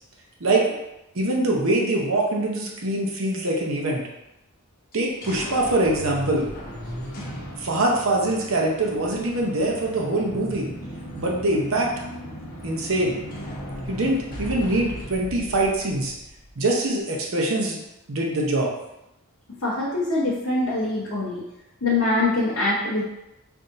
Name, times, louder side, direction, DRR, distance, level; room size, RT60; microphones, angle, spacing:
voice 1, 1.1-4.0 4.9-6.5 7.6-10.7 11.2-11.9 12.6-13.2 13.9-16.1 16.6-17.8 18.1-18.7, right 2 dB, 60° right, -1 dB, 0.8 m, -23 dB
sound 1, 4.9-16.6, equal, 40° left, 0.9 m, -37 dB
voice 2, 19.6-21.4 21.8-23.0, left 2 dB, 65° left, -8 dB, 1.0 m, -23 dB
5.7 x 2.7 x 2.6 m, 0.89 s
head